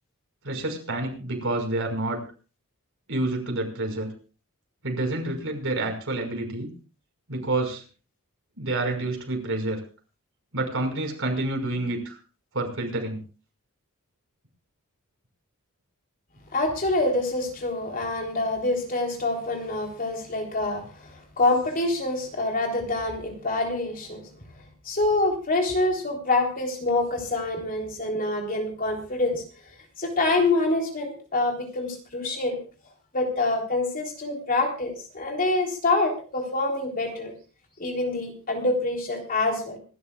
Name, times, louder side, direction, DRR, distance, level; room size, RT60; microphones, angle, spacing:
voice 1, 0.4-2.2 3.1-4.1 4.8-6.7 7.3-7.8 8.6-9.8 10.5-12.2 12.5-13.2, right 2 dB, 65° right, 2 dB, 5.6 m, -28 dB
voice 2, 16.5-24.3 24.8-29.4 30.0-32.6 33.1-37.3 37.8-39.8, left 2 dB, 40° left, 1 dB, 3.7 m, -26 dB
26.5 x 13.0 x 2.5 m, 0.37 s
head